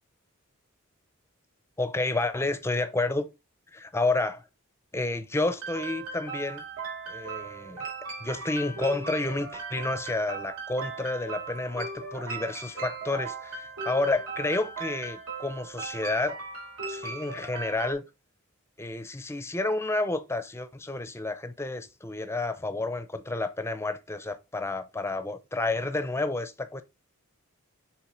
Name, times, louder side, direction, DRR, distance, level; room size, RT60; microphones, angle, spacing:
voice 1, 1.8-3.3 3.7-4.4 4.9-6.6 7.1-7.9 8.2-16.4 16.9-18.0 18.8-26.8, left 2 dB, 10° left, 0.6 m, -30 dB
sound 1, 5.6-17.9, right 4 dB, 80° right, 2.9 m, -38 dB
7.4 x 3.7 x 3.8 m
head